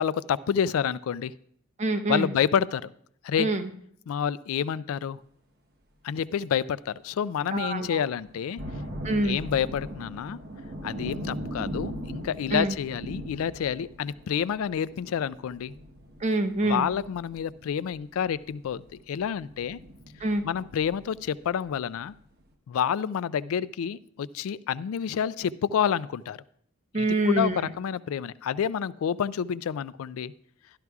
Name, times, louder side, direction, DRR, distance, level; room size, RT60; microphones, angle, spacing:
voice 1, 0.0-1.3 2.1-2.9 3.2-3.5 4.1-5.2 6.0-8.6 9.2-10.4 10.8-15.7 16.6-19.8 20.4-22.1 22.7-26.4 27.3-30.3, left 8 dB, 90° left, 18 dB, 0.3 m, -28 dB
voice 2, 1.8-2.3 3.4-3.7 7.5-8.0 9.0-9.4 12.5-12.8 16.2-16.9 20.2-20.5 26.9-27.7, right 2 dB, 35° right, 7 dB, 0.6 m, -26 dB
sound 1, 7.6-7.7 8.3-21.7 22.1-22.2, equal, 50° right, 1.0 m, -40 dB
12.0 x 12.0 x 2.3 m, 0.67 s
head